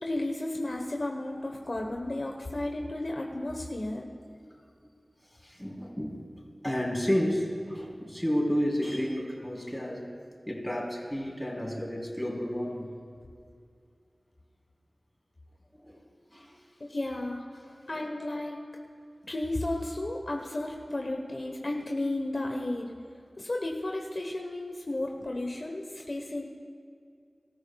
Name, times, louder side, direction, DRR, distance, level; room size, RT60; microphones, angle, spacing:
voice 1, 0.0-4.1 16.9-17.4 17.9-18.6 19.3-22.9 23.4-26.4, left 1 dB, 55° left, 1 dB, 1.1 m, -33 dB
voice 2, 5.4-6.2 6.6-10.0 10.5-12.9 15.8-16.0 16.3-16.5 17.6-18.3, equal, 5° left, -3 dB, 3.8 m, -31 dB
23.5 x 13.5 x 2.4 m, 2.3 s
wide cardioid pair, 60°, 0 cm